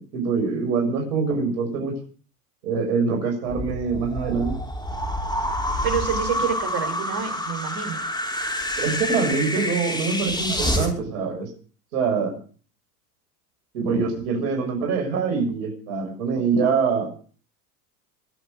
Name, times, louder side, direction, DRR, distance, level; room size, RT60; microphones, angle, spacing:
voice 1, 0.0-1.9 2.6-4.6 8.8-11.5 11.9-12.3 13.7-17.1, right 5 dB, 70° right, 3 dB, 6.5 m, -24 dB
sound 1, 3.5-10.9, left 1 dB, 10° left, 6.1 m, -27 dB
voice 2, 5.8-8.0, right 8 dB, 55° right, 8 dB, 6.2 m, -28 dB
24.5 x 8.1 x 6.5 m, 0.42 s
hypercardioid pair, 90°, 46 cm